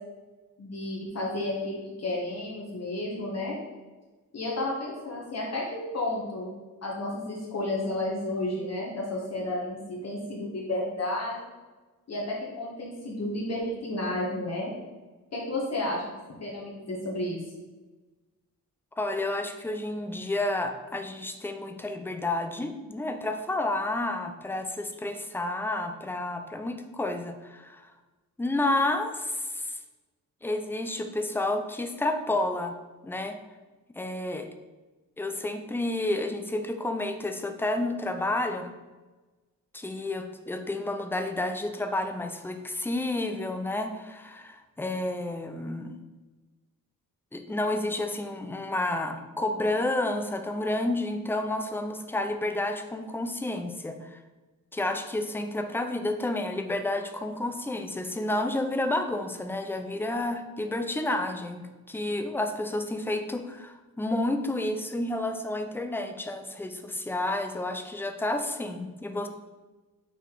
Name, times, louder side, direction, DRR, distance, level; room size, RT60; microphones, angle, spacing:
voice 1, 0.6-3.6 4.3-6.5 6.8-11.5 12.1-14.7 15.3-16.0 16.4-17.4, left 1 dB, 45° left, -3 dB, 1.3 m, -32 dB
voice 2, 19.0-27.9 28.4-29.8 30.4-32.7 33.0-33.4 34.0-34.5 35.2-38.7 39.7-46.0 47.3-54.2 54.7-69.3, left 2 dB, 5° left, 6 dB, 0.4 m, -30 dB
5.7 x 4.2 x 4.5 m, 1.2 s
wide cardioid pair, 165°, 35 cm